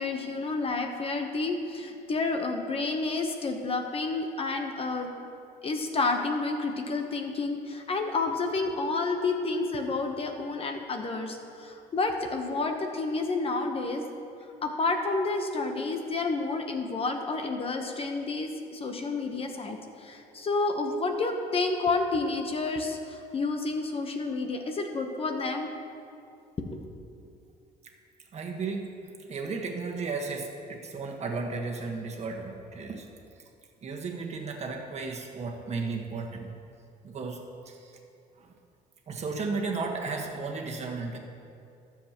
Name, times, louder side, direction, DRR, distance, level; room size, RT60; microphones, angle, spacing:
voice 1, 0.0-5.1 5.6-14.1 14.6-25.7 26.6-26.8, left 3 dB, 35° left, 4 dB, 1.0 m, -30 dB
voice 2, 28.3-33.1 33.8-36.5 37.0-37.8 39.1-41.2, right 4 dB, 40° right, 2 dB, 1.5 m, -34 dB
19.5 x 7.4 x 3.0 m, 2.5 s
cardioid pair, 110°, 17 cm